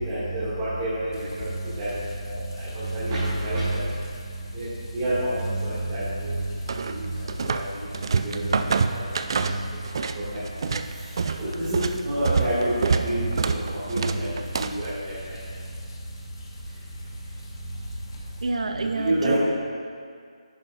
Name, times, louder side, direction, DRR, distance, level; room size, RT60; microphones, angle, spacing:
voice 1, 0.1-1.5 1.8-1.9 2.2-2.4 2.7-3.8 4.5-4.7 4.9-6.4 6.9-7.0 7.5-7.6 8.2-8.6 8.9-9.0 9.3-9.5 10.3-10.4 11.4-14.3 14.5-15.1 18.9-19.4, right 1 dB, 20° right, -13 dB, 2.2 m, -27 dB
sound 1, 1.1-18.4, left 1 dB, 35° left, 1.2 m, -41 dB
sound 2, 6.7-7.7 7.9-10.2 10.5-14.9, right 5 dB, 40° right, 0.4 m, -26 dB
voice 2, 18.4-19.4, right 3 dB, 60° right, 6 dB, 0.8 m, -27 dB
10.5 x 9.0 x 2.6 m, 2.1 s
figure-of-eight pair, 165°, 4 cm